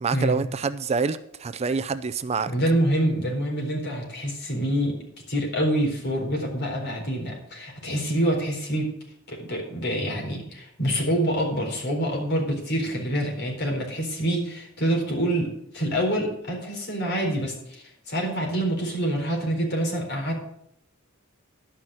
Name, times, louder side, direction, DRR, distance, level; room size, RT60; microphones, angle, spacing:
voice 1, 0.0-2.5, right 5 dB, 30° right, 13 dB, 0.4 m, -26 dB
voice 2, 2.5-4.9 5.3-8.9 9.3-20.6, right 1 dB, 55° left, 0 dB, 4.2 m, -26 dB
12.0 x 5.8 x 7.7 m, 0.73 s
head